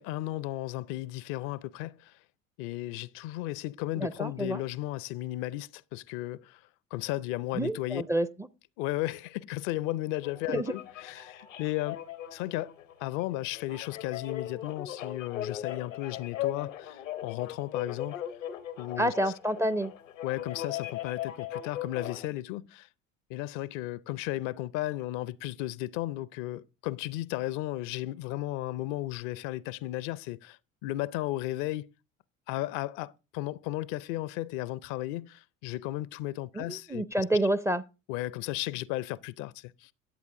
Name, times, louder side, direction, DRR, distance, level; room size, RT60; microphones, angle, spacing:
voice 1, 0.0-2.2 2.6-6.6 6.9-8.0 8.8-12.0 12.3-12.7 13.0-18.2 18.8-19.1 20.2-22.9 23.3-31.9 32.5-37.2 38.1-39.9, left 16 dB, 55° left, 0.5 m, -34 dB
voice 2, 4.0-4.6 7.5-8.5 10.5-10.8 19.0-19.9 36.5-37.8, right 1 dB, 10° right, 0.4 m, -29 dB
sound 1, 10.2-22.3, left 11 dB, 85° left, 0.8 m, -38 dB
10.0 x 8.2 x 3.6 m
figure-of-eight pair, 60°, 38 cm